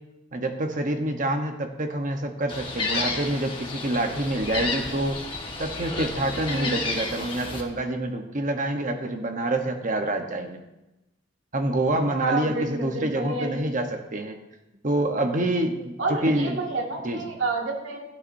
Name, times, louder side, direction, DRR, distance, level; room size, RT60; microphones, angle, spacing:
voice 1, 0.3-5.2 5.6-10.6 11.5-14.4 14.8-16.6 17.0-17.2, right 1 dB, 40° right, 4 dB, 1.0 m, -27 dB
Gull seagull, 2.5-7.6, left 3 dB, 25° left, 1.3 m, -31 dB
voice 2, 6.5-6.8 12.1-13.6 16.0-18.0, right 3 dB, 80° right, 0 dB, 2.0 m, -29 dB
15.5 x 8.3 x 2.7 m, 0.96 s
head